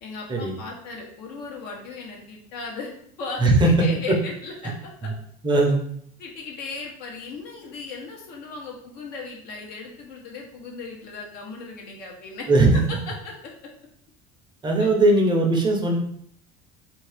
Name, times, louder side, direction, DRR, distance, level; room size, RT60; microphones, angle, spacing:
voice 1, 0.0-2.9 3.2-4.7 5.0-5.1 6.2-12.5 13.2-13.3 14.8-14.9, left 4 dB, 60° left, -1 dB, 1.0 m, -37 dB
voice 2, 3.4-3.7 4.1-4.2 5.0-5.1 5.4-5.8 12.5-12.8 14.6-16.0, right 2 dB, 25° right, 1 dB, 0.7 m, -19 dB
2.8 x 2.6 x 3.4 m, 0.66 s
supercardioid pair, 105°, 18 cm